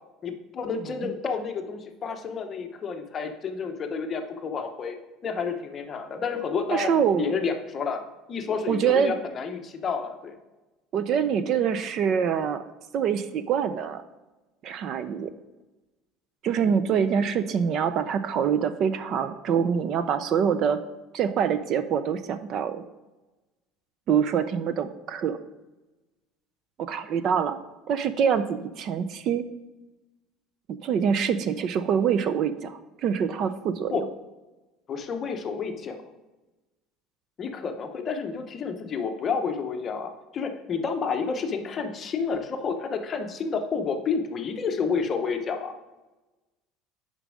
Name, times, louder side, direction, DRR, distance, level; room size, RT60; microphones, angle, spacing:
voice 1, 0.2-5.0 5.2-6.9 7.2-8.0 8.3-10.4 33.9-34.0 34.9-36.0 37.4-45.7, left 5 dB, 25° left, 5 dB, 0.8 m, -30 dB
voice 2, 6.7-7.4 8.7-9.1 10.9-12.6 12.9-14.0 14.6-15.3 16.4-20.8 21.1-22.8 24.1-25.4 26.8-27.6 27.9-29.4 30.7-34.0, right 7 dB, 40° right, 12 dB, 0.4 m, -25 dB
6.6 x 5.2 x 6.2 m, 1.1 s
cardioid pair, 170°, 0 cm